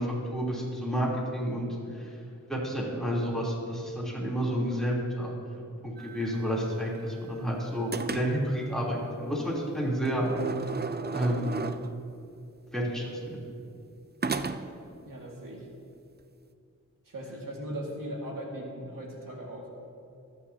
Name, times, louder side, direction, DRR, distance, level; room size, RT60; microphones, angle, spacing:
voice 1, 0.0-1.7 2.0-2.1 2.5-5.3 5.8-10.2 11.1-11.6 12.7-13.4, equal, ahead, -5 dB, 3.4 m, -30 dB
sound 1, 6.0-7.4 7.9-8.6 10.0-12.1 14.2-14.9, right 4 dB, 30° right, 0.5 m, -35 dB
voice 2, 15.1-15.7 17.1-19.7, right 1 dB, 85° right, -2 dB, 2.2 m, -38 dB
26.5 x 9.6 x 2.9 m, 2.6 s
wide cardioid pair, 95°, 32 cm